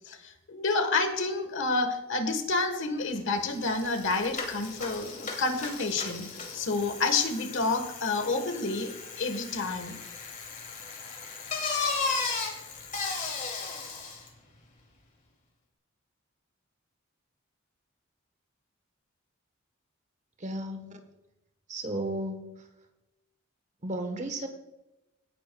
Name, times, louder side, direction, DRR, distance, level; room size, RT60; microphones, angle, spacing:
voice 1, 0.1-6.2 6.5-10.0, left 3 dB, 65° left, 8 dB, 1.4 m, -29 dB
Bicycle, 3.2-3.3 3.5-14.3, left 4 dB, 40° left, 2.6 m, -36 dB
voice 2, 20.4-21.0 21.7-22.6 23.8-24.5, right 1 dB, 35° right, 6 dB, 1.1 m, -34 dB
17.0 x 10.5 x 2.3 m, 0.96 s
head